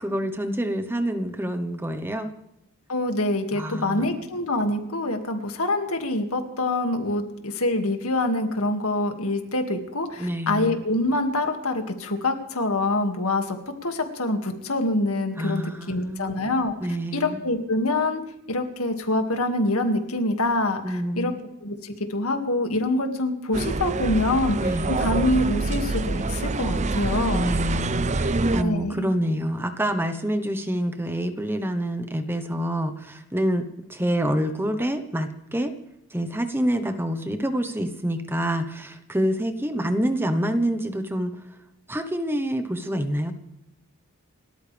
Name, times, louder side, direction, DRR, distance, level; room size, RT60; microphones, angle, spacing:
voice 1, 0.0-2.3 3.5-4.1 10.2-10.8 15.4-16.4 16.8-17.4 20.8-21.4 24.6-24.9 27.3-35.7 36.1-41.4 41.9-43.3, equal, 10° right, 8 dB, 1.1 m, -27 dB
voice 2, 2.9-13.6 13.8-16.7 17.1-18.2 18.5-21.3 21.6-24.6 24.9-27.5 28.6-29.1, left 2 dB, 80° left, 5 dB, 2.3 m, -25 dB
sound 1, 23.5-28.6, right 2 dB, 30° right, 0.6 m, -26 dB
29.5 x 13.5 x 3.5 m, 0.88 s
head